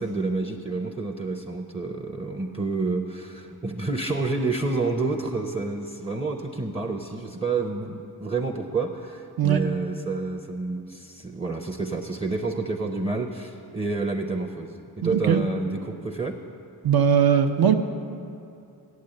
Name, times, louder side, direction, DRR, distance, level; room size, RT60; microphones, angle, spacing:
voice 1, 0.0-16.3, right 3 dB, 15° right, 3 dB, 0.6 m, -29 dB
voice 2, 15.0-15.4 16.8-17.7, right 8 dB, 65° right, 7 dB, 0.8 m, -20 dB
8.4 x 8.4 x 7.7 m, 2.6 s
wide cardioid pair, 95°, 39 cm